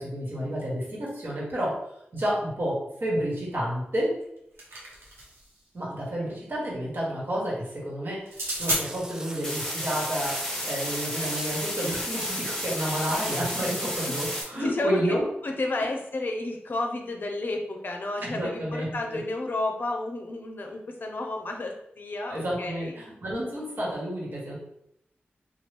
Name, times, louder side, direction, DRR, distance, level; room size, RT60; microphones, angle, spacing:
voice 1, 0.0-1.7 2.1-4.1 5.7-15.2 18.2-19.2 22.3-24.6, equal, 55° right, -5 dB, 1.4 m, -30 dB
sound 1, 4.2-5.5 8.3-8.8, right 1 dB, 85° right, 0.9 m, -31 dB
sound 2, 8.7-9.5 10.2-10.5 11.2-11.5 12.2-12.4 13.1-13.5 14.2-14.3, right 1 dB, 15° right, 0.4 m, -39 dB
sound 3, 9.4-14.4, equal, 10° left, 1.1 m, -32 dB
voice 2, 14.5-15.2 15.4-23.0, left 2 dB, 55° left, 3 dB, 0.5 m, -31 dB
3.0 x 2.3 x 3.3 m, 0.78 s
wide cardioid pair, 65°, 4 cm